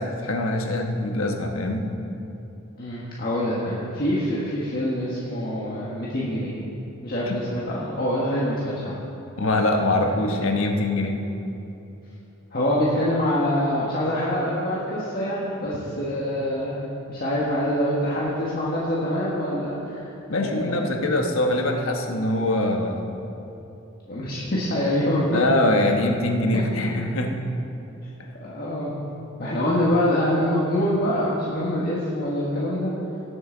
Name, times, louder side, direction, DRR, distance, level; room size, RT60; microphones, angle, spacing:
voice 1, 0.0-1.8 7.3-7.4 9.4-11.2 20.3-23.1 25.3-27.3, left 1 dB, 75° left, 3 dB, 1.2 m, -23 dB
voice 2, 2.8-6.5 7.0-9.0 10.0-10.1 12.5-21.1 24.1-25.3 26.5-26.6 28.4-28.9 29.4-32.9, left 1 dB, 45° left, -7 dB, 1.5 m, -25 dB
19.0 x 7.9 x 3.9 m, 2.9 s
head